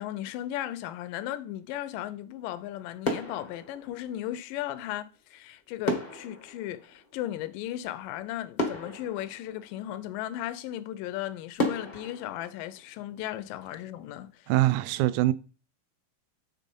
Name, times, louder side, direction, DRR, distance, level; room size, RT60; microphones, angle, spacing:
voice 1, 0.0-14.5, left 13 dB, 80° left, 2.2 m, -36 dB
sound 1, 2.4-2.7 3.0-4.5 5.8-7.8 8.2-8.3 8.6-10.1 10.7-10.8 11.6-13.5 13.8-14.0, left 1 dB, 60° left, 0.5 m, -34 dB
voice 2, 14.5-15.3, right 16 dB, 80° right, 1.8 m, -23 dB
8.5 x 4.0 x 5.3 m
omnidirectional pair, 3.9 m